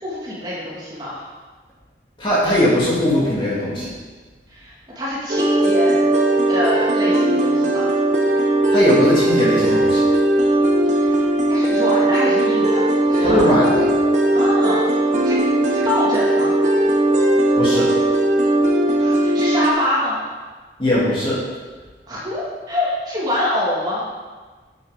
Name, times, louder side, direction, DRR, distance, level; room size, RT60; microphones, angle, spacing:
voice 1, 0.0-1.2 4.5-6.0 6.5-7.9 11.0-11.2 11.5-13.7 14.3-14.8 15.2-15.4 15.7-16.5 19.0-20.2 22.1-24.0, left 1 dB, 25° right, -7 dB, 2.3 m, -25 dB
voice 2, 2.2-3.9 8.7-10.0 13.2-13.9 17.6-17.9 20.8-21.4, equal, 30° left, -7 dB, 2.9 m, -19 dB
sound 1, 5.3-19.7, right 1 dB, 40° right, 1.1 m, -18 dB
8.5 x 7.9 x 5.3 m, 1.4 s
head